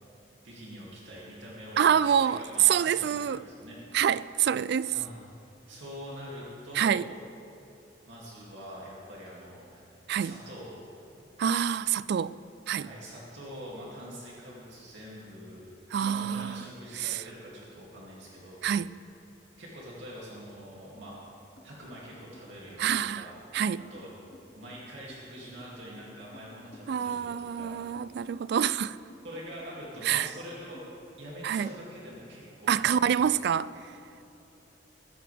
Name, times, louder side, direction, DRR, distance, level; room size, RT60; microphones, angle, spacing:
voice 1, 0.4-4.0 4.9-5.1 5.7-7.0 8.1-9.8 10.2-10.8 12.8-15.6 15.9-18.9 19.6-21.2 21.6-23.4 23.9-24.1 24.5-27.8 29.2-30.8 31.2-33.3, equal, 75° right, 2.5 m, -44 dB
voice 2, 1.8-3.4 3.9-5.0 6.7-7.0 10.1-10.3 11.4-12.3 12.7-12.9 15.9-16.7 17.0-17.2 18.6-18.9 22.8-23.3 23.5-23.8 26.9-29.0 30.0-30.3 31.4-31.7 32.7-33.7, right 8 dB, 60° right, 0.3 m, -26 dB
sound 1, 21.6-21.7 21.9-31.2, left 1 dB, 40° left, 2.3 m, -54 dB
21.5 x 10.0 x 3.4 m
head